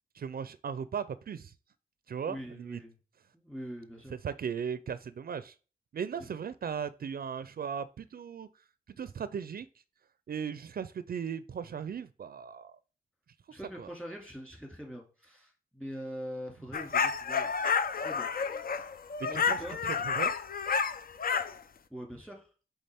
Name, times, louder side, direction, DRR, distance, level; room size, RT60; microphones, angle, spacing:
voice 1, 0.2-1.5 2.1-2.8 4.2-5.5 5.9-8.5 9.0-9.7 10.3-12.8 13.8-13.9 19.2-19.6 20.0-20.3, right 7 dB, 70° right, 15 dB, 0.4 m, -37 dB
voice 2, 2.2-3.0 3.3-4.1 6.2-6.3 13.5-17.5 18.0-18.3 19.3-19.8 21.9-22.5, equal, 5° left, 1 dB, 2.2 m, -43 dB
sound 1, 16.7-21.6, left 6 dB, 65° left, 0.5 m, -30 dB
8.4 x 3.6 x 3.4 m, 0.36 s
wide cardioid pair, 110°, 16 cm